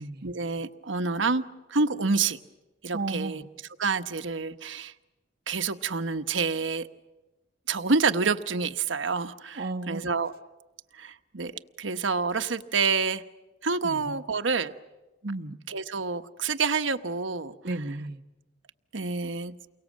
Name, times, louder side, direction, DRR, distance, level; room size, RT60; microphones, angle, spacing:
voice 1, 0.2-2.4 2.8-3.4 3.8-4.9 5.5-6.9 7.7-10.3 11.0-11.5 11.8-13.2 13.6-14.7 15.7-17.5 18.9-19.5, right 4 dB, 85° right, 8 dB, 1.2 m, -28 dB
voice 2, 2.9-3.4 9.5-10.1 13.8-14.2 15.2-15.5 17.6-18.2, right 2 dB, 55° right, 1 dB, 1.5 m, -33 dB
29.5 x 23.5 x 7.5 m, 1.1 s
head